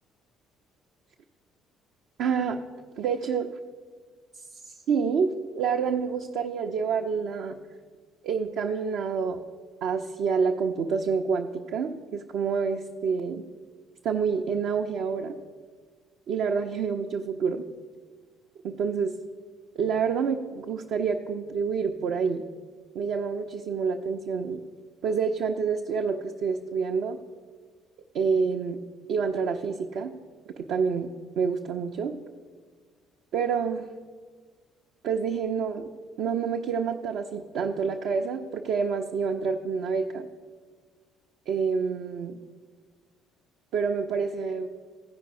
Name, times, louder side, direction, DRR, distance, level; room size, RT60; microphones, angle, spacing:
voice 1, 2.2-2.6 3.0-3.5 4.9-7.6 8.2-9.4 9.8-13.4 14.0-15.3 16.3-17.6 18.6-19.2 19.8-22.4 23.0-24.6 25.0-27.2 28.1-28.8 29.1-30.1 30.7-32.1 33.3-33.9 35.0-35.9 36.2-40.3 41.5-42.4 43.7-44.7, right 6 dB, 55° right, 2 dB, 0.4 m, -28 dB
15.0 x 5.2 x 4.7 m, 1.5 s
figure-of-eight pair, 50°, 0 cm